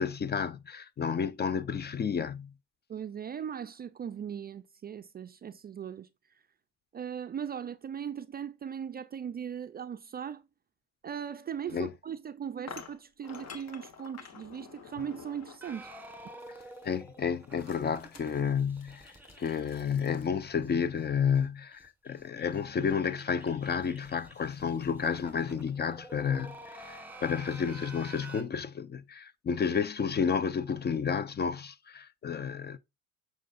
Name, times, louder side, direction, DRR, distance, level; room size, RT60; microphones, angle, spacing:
voice 1, 0.0-2.5 11.7-11.9 16.8-32.8, left 6 dB, 30° left, 0.6 m, -31 dB
voice 2, 2.9-6.1 6.9-10.4 11.0-15.9, right 8 dB, 25° right, 0.4 m, -39 dB
sound 1, 11.7-11.8 12.7-15.8 16.4-16.9 17.6-20.3, left 6 dB, 45° left, 1.5 m, -49 dB
sound 2, 15.6-20.7 21.0-21.1 21.3-21.4 21.7-28.4, right 2 dB, 5° right, 1.6 m, -50 dB
7.4 x 6.4 x 2.5 m
supercardioid pair, 95°, 36 cm